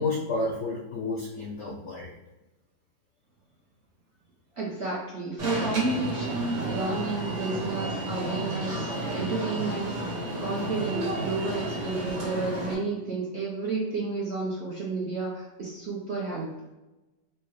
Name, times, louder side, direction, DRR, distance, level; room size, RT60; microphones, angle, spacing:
voice 1, 0.0-2.1, left 3 dB, 70° left, -2 dB, 0.6 m, -30 dB
voice 2, 4.6-9.9 10.4-16.7, right 3 dB, 60° right, -5 dB, 0.7 m, -31 dB
Alarm, 5.4-12.7, right 1 dB, 85° right, 1.9 m, -32 dB
4.5 x 2.1 x 3.2 m, 1.0 s
omnidirectional pair, 1.9 m